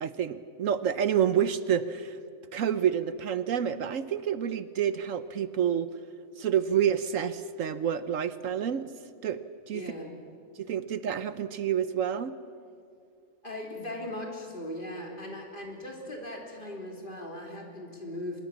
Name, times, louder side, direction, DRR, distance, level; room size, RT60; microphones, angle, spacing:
voice 1, 0.0-2.2 2.5-5.9 6.4-8.9 9.2-9.8 10.6-12.4, right 9 dB, 70° right, 13 dB, 1.1 m, -28 dB
voice 2, 9.7-10.1 13.4-18.4, left 1 dB, 35° left, 0 dB, 3.6 m, -39 dB
24.5 x 21.5 x 7.2 m, 2.3 s
omnidirectional pair, 1.5 m